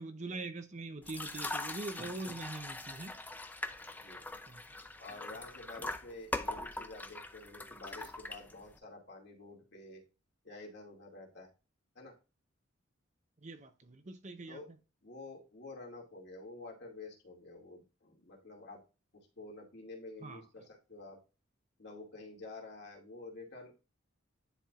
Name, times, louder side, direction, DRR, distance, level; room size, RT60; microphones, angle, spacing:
voice 1, 0.0-3.2 4.5-4.6 13.4-14.6 20.2-20.4, right 3 dB, 35° right, 0.6 m, -43 dB
sound 1, 1.0-8.8, left 2 dB, 10° left, 0.4 m, -42 dB
voice 2, 5.0-10.0 10.4-11.5 11.9-12.2 14.5-14.7 15.0-18.8 19.4-21.2 21.8-23.8, left 2 dB, 55° left, 2.3 m, -49 dB
10.5 x 4.3 x 2.4 m
head